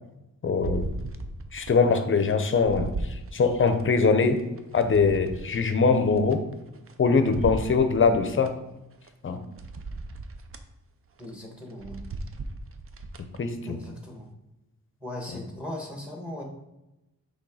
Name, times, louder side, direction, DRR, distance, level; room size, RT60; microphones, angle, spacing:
voice 1, 0.4-0.9 1.5-2.9 3.3-4.4 4.7-6.4 7.0-8.5 9.2-9.4 13.4-13.8, left 4 dB, 35° left, 8 dB, 0.6 m, -22 dB
sound 1, 0.6-1.8 2.2-3.8 4.4-6.9 7.3-8.5 9.0-9.1 9.6-10.7 11.1-11.3 11.7-13.4 13.8-13.9, right 3 dB, 40° right, 0.5 m, -37 dB
voice 2, 11.2-12.0 13.7-14.3 15.0-16.4, left 1 dB, 5° right, 1 dB, 1.1 m, -38 dB
6.2 x 3.5 x 4.8 m, 0.96 s
wide cardioid pair, 160°, 34 cm